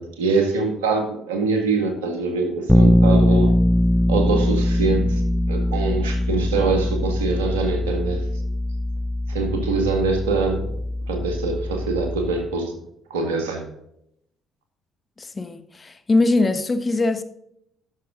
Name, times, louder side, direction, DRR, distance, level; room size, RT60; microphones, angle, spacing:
voice 1, 0.0-3.5 4.1-5.2 5.5-8.2 9.3-10.7 11.1-12.7 13.1-13.7, right 4 dB, 90° right, 1.7 m, -24 dB
Bass guitar, 2.7-12.5, left 1 dB, 5° left, 0.6 m, -21 dB
voice 2, 15.2-17.2, left 2 dB, 30° left, 1.2 m, -21 dB
11.0 x 6.7 x 3.8 m
hypercardioid pair, 55°, 0 cm